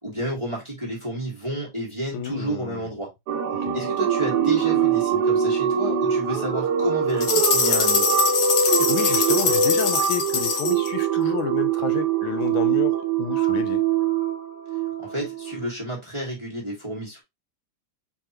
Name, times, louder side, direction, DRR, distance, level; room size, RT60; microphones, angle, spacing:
voice 1, 0.0-3.1 3.7-8.1 15.0-17.2, right 1 dB, 15° right, 1.4 m, -30 dB
voice 2, 2.1-2.9 3.6-3.8 8.6-13.8, left 11 dB, 80° left, 1.4 m, -31 dB
sound 1, 3.3-15.6, right 7 dB, 60° right, 1.2 m, -23 dB
sound 2, 7.2-10.9, left 6 dB, 60° left, 1.5 m, -23 dB
4.7 x 3.5 x 2.9 m
omnidirectional pair, 2.2 m